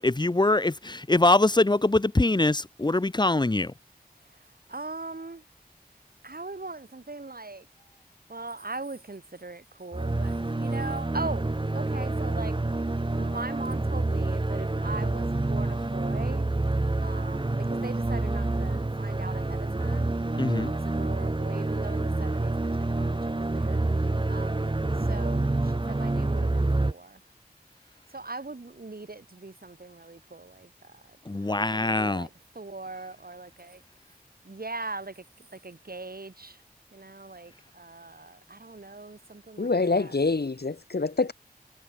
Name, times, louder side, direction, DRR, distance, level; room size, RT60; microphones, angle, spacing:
voice 1, 0.0-3.7 20.4-20.7 31.3-32.3, left 2 dB, 25° left, 0.7 m, -23 dB
voice 2, 4.2-5.4 6.2-7.7 8.3-16.5 17.0-27.2 28.1-33.8 34.4-35.2 35.6-36.6 36.9-40.2, right 3 dB, 70° right, 4.0 m, -41 dB
sound 1, 9.9-26.9, right 2 dB, 30° right, 1.0 m, -28 dB
voice 3, 39.6-41.3, left 3 dB, 90° left, 2.7 m, -26 dB
wide cardioid pair, 55°, 16 cm